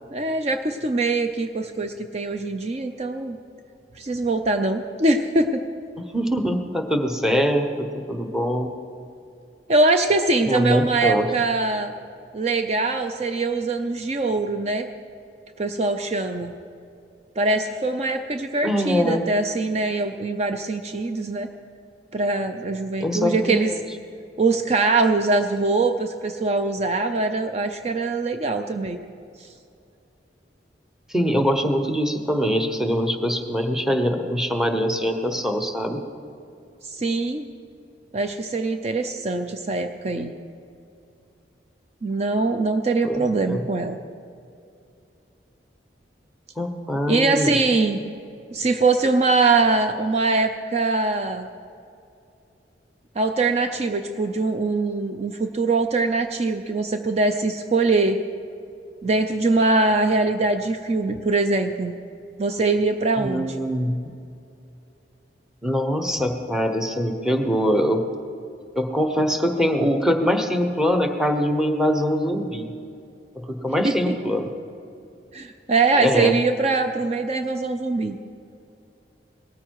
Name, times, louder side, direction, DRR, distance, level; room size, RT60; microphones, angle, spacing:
voice 1, 0.1-3.4 4.0-5.6 9.7-11.9 12.3-14.9 15.6-16.5 17.4-21.5 22.1-23.7 24.4-29.0 36.8-37.4 38.1-40.3 42.0-44.0 47.1-48.0 48.5-51.5 53.2-58.2 59.0-61.9 62.4-63.6 73.8-74.1 75.3-78.2, right 3 dB, 40° right, 7 dB, 0.6 m, -22 dB
voice 2, 6.1-8.7 10.5-11.3 18.6-19.2 23.0-23.8 31.1-36.0 43.0-43.6 46.6-47.5 63.2-64.0 65.6-68.0 68.7-72.7 73.3-74.5 76.0-76.3, equal, 5° right, 5 dB, 1.1 m, -23 dB
18.5 x 13.5 x 4.7 m, 2.6 s
head